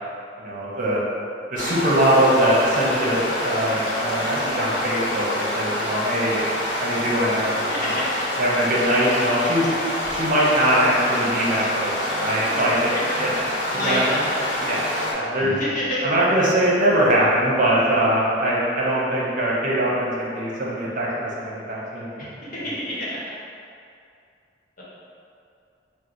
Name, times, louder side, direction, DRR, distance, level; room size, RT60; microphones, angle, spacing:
voice 1, 0.4-1.0 1.5-6.4 6.7-7.9 8.4-9.7 10.1-12.9 13.2-13.3 13.7-14.0 14.6-14.8 15.1-15.5 16.0-22.3, right 1 dB, 50° right, -5 dB, 0.8 m, -22 dB
sound 1, 1.5-15.1, left 1 dB, 90° left, 0.9 m, -26 dB
voice 2, 13.7-14.4 15.4-16.1 22.2-23.2 24.8-24.9, equal, 50° left, -7 dB, 1.0 m, -28 dB
4.6 x 2.0 x 3.8 m, 2.4 s
head